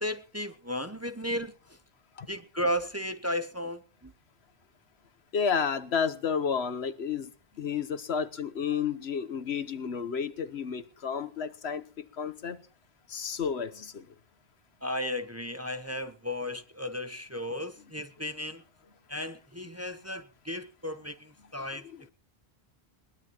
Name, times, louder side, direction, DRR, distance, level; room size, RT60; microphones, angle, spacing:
voice 1, 0.0-1.5 2.3-4.1 14.8-18.6 19.1-21.9, left 1 dB, 15° right, 0.8 m, -34 dB
voice 2, 5.3-7.3 7.6-12.6 13.1-14.0 21.8-22.0, left 6 dB, 75° left, 1.3 m, -31 dB
22.0 x 18.0 x 3.0 m
omnidirectional pair, 1.1 m